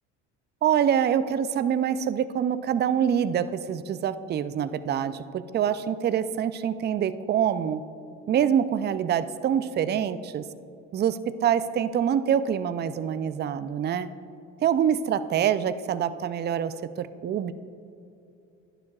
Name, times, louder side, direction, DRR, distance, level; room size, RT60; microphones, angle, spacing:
voice 1, 0.6-7.8 8.3-10.4 10.9-14.1 14.6-17.5, right 9 dB, 30° right, 13 dB, 0.4 m, -25 dB
11.5 x 9.9 x 2.4 m, 2.7 s
hypercardioid pair, 75°, 36 cm